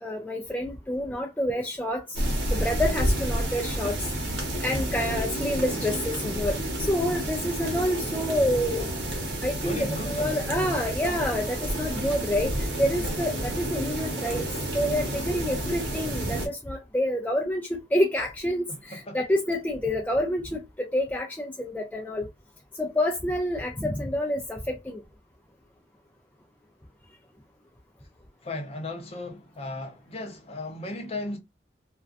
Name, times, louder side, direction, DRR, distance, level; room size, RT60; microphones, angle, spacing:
voice 1, 0.0-2.2 2.5-4.1 4.6-8.8 9.4-9.8 10.1-14.5 14.7-22.3 22.8-25.0, left 1 dB, 10° left, 0.3 m, -28 dB
sound 1, 2.1-16.5, right 1 dB, 65° right, 1.0 m, -30 dB
voice 2, 9.6-10.9 18.7-19.2 19.5-19.6 28.4-31.4, left 1 dB, 35° left, 0.7 m, -36 dB
2.4 x 2.2 x 2.3 m
head